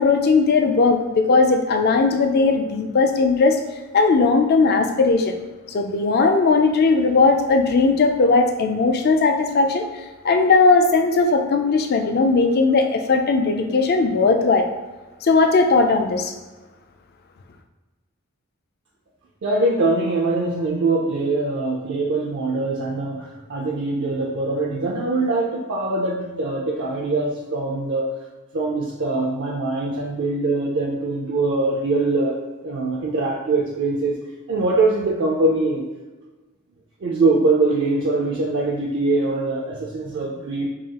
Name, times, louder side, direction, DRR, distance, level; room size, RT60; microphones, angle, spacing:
voice 1, 0.0-3.6 3.9-5.3 5.7-9.8 10.2-14.7 15.2-16.3, left 4 dB, 45° left, 5 dB, 0.4 m, -18 dB
voice 2, 19.4-28.1 28.5-32.4 32.6-34.2 34.5-35.9 37.0-40.7, right 2 dB, 55° right, -2 dB, 0.4 m, -22 dB
4.7 x 2.3 x 2.8 m, 1.2 s
head